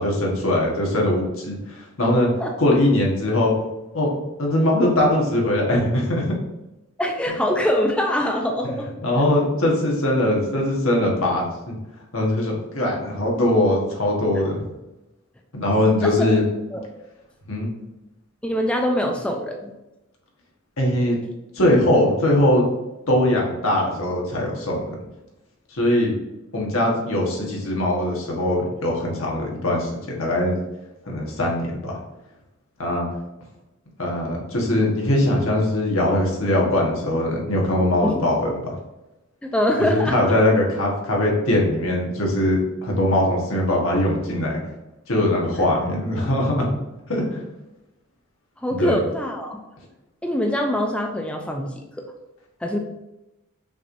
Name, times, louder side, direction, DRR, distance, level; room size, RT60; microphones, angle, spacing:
voice 1, 0.0-2.3 2.6-3.5 3.9-6.3 8.6-8.7 9.0-11.7 12.1-14.6 15.5-16.4 17.5-17.7 20.8-21.2 21.5-22.7 23.1-25.0 25.7-26.1 26.5-30.5 31.0-32.0 32.8-33.0 34.0-38.8 39.8-44.6 45.1-46.7 47.1-47.4 48.7-48.9, left 1 dB, 70° left, -2 dB, 1.2 m, -21 dB
voice 2, 7.0-8.9 16.0-16.2 16.7-16.8 18.4-19.7 38.0-38.2 39.4-40.3 48.6-49.6 50.2-51.8 52.6-52.8, equal, 5° left, 2 dB, 0.3 m, -23 dB
5.8 x 3.2 x 2.6 m, 0.97 s
head